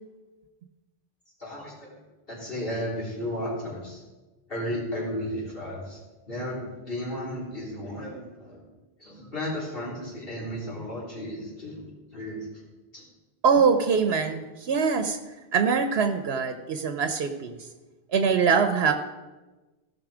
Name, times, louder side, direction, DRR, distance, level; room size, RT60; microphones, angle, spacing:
voice 1, 1.4-1.9 2.3-4.0 4.5-6.0 6.3-8.6 9.0-11.9 12.1-12.5 12.9-13.0, equal, 65° left, -5 dB, 3.8 m, -34 dB
voice 2, 13.4-15.2 15.5-17.5 18.1-18.9, right 5 dB, 80° right, 7 dB, 1.0 m, -23 dB
16.0 x 5.6 x 4.9 m, 1.2 s
omnidirectional pair, 1.0 m